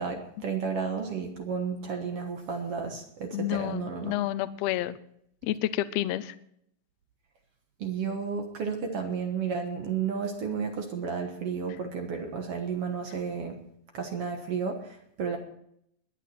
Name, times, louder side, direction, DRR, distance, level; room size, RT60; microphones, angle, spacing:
voice 1, 0.0-4.2 7.8-13.6 13.9-15.4, right 6 dB, 55° right, 4 dB, 1.8 m, -32 dB
voice 2, 3.3-5.0 5.4-6.3, left 14 dB, 85° left, 13 dB, 1.5 m, -29 dB
22.0 x 9.2 x 4.3 m, 0.71 s
omnidirectional pair, 3.9 m